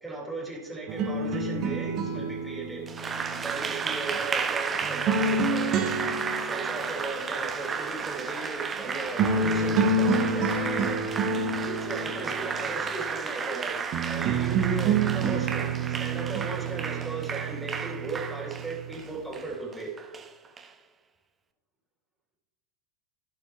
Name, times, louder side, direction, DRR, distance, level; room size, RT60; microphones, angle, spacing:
voice 1, 0.0-2.9 3.4-5.9 6.4-11.0 11.6-19.9, right 3 dB, 5° right, -4 dB, 2.8 m, -37 dB
sound 1, 0.9-4.2 4.8-7.0 8.8-8.9 9.2-12.8 13.9-18.9, right 3 dB, 35° right, 0.9 m, -28 dB
Applause, 2.9-20.7, right 5 dB, 20° right, 0.6 m, -33 dB
16.0 x 5.6 x 3.1 m, 1.2 s
figure-of-eight pair, 90°, 0 cm